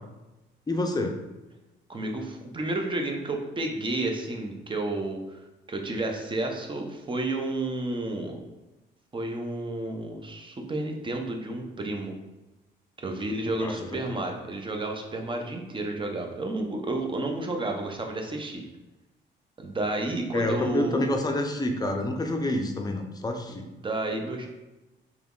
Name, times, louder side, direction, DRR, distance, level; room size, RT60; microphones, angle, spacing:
voice 1, 0.7-1.2 13.6-13.7 14.1-14.3 20.3-23.7, left 1 dB, 20° left, 3 dB, 0.6 m, -28 dB
voice 2, 1.9-5.4 5.7-8.4 9.1-12.1 13.0-18.6 19.6-21.0 23.5-24.5, right 2 dB, 25° right, 3 dB, 0.7 m, -31 dB
3.3 x 3.0 x 3.7 m, 1.0 s
cardioid pair, 90°, 20 cm